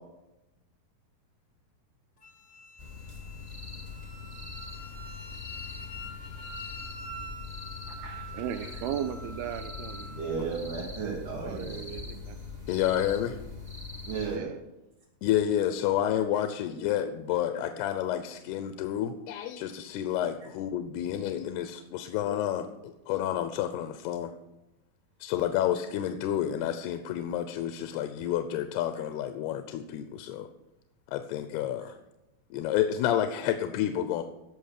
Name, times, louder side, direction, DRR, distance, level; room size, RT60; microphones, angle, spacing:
Wind instrument woodwind instrument, 2.2-10.4, equal, 40° left, 1.0 m, -45 dB
sound 1, 2.8-14.4, left 4 dB, 25° right, 0.8 m, -42 dB
voice 1, 8.3-10.1 11.4-12.4 14.3-14.6, right 10 dB, 85° right, 9 dB, 2.6 m, -36 dB
voice 2, 10.0-11.9 14.1-14.5, right 5 dB, 55° right, -5 dB, 3.8 m, -35 dB
voice 3, 12.7-13.4 15.2-24.3 25.2-30.5 31.1-32.0 32.5-34.2, left 11 dB, 85° left, 8 dB, 2.8 m, -30 dB
17.0 x 6.4 x 6.6 m, 0.96 s
omnidirectional pair, 4.6 m